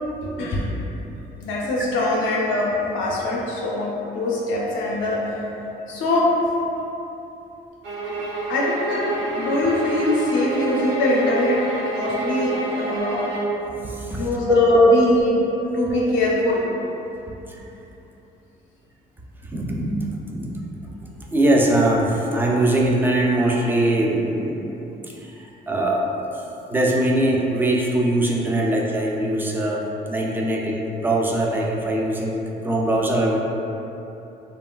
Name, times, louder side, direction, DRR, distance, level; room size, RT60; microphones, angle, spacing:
voice 1, 0.2-0.7 1.4-5.4 5.9-6.4 8.5-13.4 14.2-15.1 15.7-16.7, left 2 dB, 85° left, -4 dB, 0.5 m, -23 dB
sound 1, 7.8-13.6, right 2 dB, 80° right, 0.8 m, -27 dB
voice 2, 13.8-15.3 15.9-16.1 17.5-17.6 19.5-20.5 21.3-26.0 26.3-26.4 26.7-32.4 32.6-33.4, right 1 dB, 10° right, -2 dB, 0.3 m, -21 dB
3.0 x 2.3 x 2.2 m, 2.9 s
cardioid pair, 90°, 20 cm